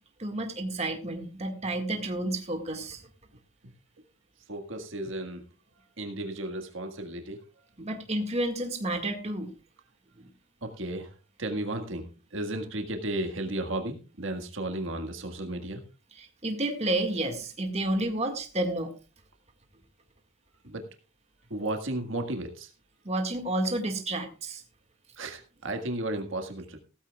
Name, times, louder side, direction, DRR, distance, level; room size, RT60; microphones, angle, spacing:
voice 1, 0.2-3.0 7.8-9.5 10.2-10.3 16.2-18.9 23.1-24.6, right 1 dB, 30° right, 4 dB, 1.9 m, -30 dB
voice 2, 4.5-5.4 6.0-7.4 10.6-11.1 11.4-15.8 20.6-20.9 21.5-22.7 25.2-26.8, right 1 dB, 65° right, 5 dB, 1.7 m, -34 dB
16.5 x 14.0 x 2.4 m, 0.33 s
head